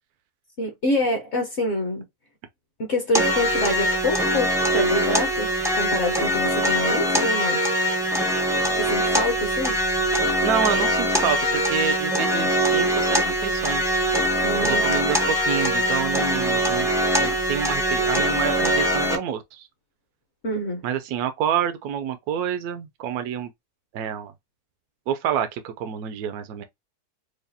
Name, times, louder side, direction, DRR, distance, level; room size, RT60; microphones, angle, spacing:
voice 1, 0.6-2.0 2.8-7.6 8.7-9.7 14.4-15.1 20.4-20.8, left 1 dB, 50° left, 1.1 m, -26 dB
sound 1, 3.1-19.2, equal, 5° right, 0.4 m, -22 dB
voice 2, 10.4-14.0 14.6-16.9 17.2-19.7 20.8-23.5 23.9-24.3 25.1-26.6, right 8 dB, 80° right, 1.1 m, -28 dB
4.8 x 2.3 x 2.6 m
omnidirectional pair, 1.6 m